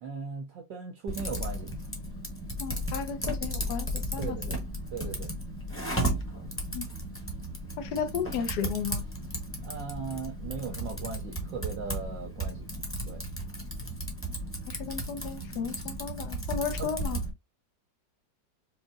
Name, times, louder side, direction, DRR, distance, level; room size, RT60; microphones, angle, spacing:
voice 1, 0.0-1.7 4.2-4.5 4.9-5.3 9.6-12.7 13.0-13.2 16.8-16.9, right 5 dB, 80° right, 1.4 m, -38 dB
Typing, 1.1-17.3, right 1 dB, 10° left, 0.9 m, -35 dB
voice 2, 2.6-4.6 6.7-6.9 7.8-9.1 14.2-14.4 14.7-17.2, left 7 dB, 70° left, 1.2 m, -34 dB
5.0 x 2.7 x 2.4 m
omnidirectional pair, 2.0 m